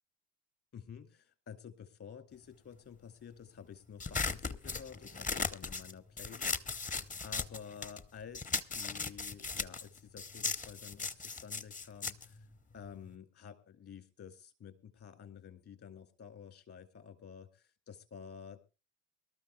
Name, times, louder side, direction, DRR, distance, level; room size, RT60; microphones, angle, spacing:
voice 1, 0.7-6.9 7.2-12.4 12.7-18.6, left 7 dB, 40° left, 8 dB, 2.7 m, -51 dB
sound 1, 4.0-8.1 8.3-13.2, left 4 dB, 20° left, 0.8 m, -38 dB
24.5 x 13.0 x 2.3 m, 0.31 s
figure-of-eight pair, 60°, 35 cm